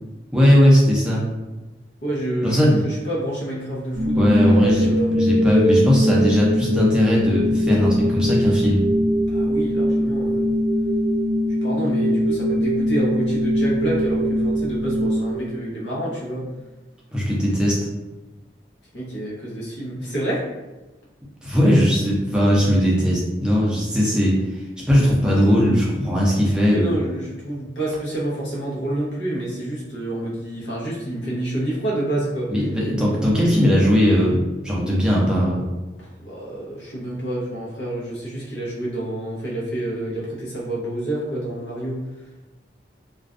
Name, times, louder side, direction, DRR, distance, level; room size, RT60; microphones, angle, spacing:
voice 1, 0.3-1.2 2.4-2.9 4.2-8.8 17.1-17.8 21.4-26.9 32.5-35.6, equal, 5° right, -6 dB, 0.4 m, -19 dB
voice 2, 2.0-5.2 9.2-10.5 11.6-16.4 18.9-20.4 26.7-32.5 36.2-42.0, right 1 dB, 85° left, -6 dB, 0.8 m, -28 dB
sound 1, 3.9-16.0, equal, 80° right, 0.3 m, -21 dB
2.4 x 2.1 x 2.4 m, 1.1 s
head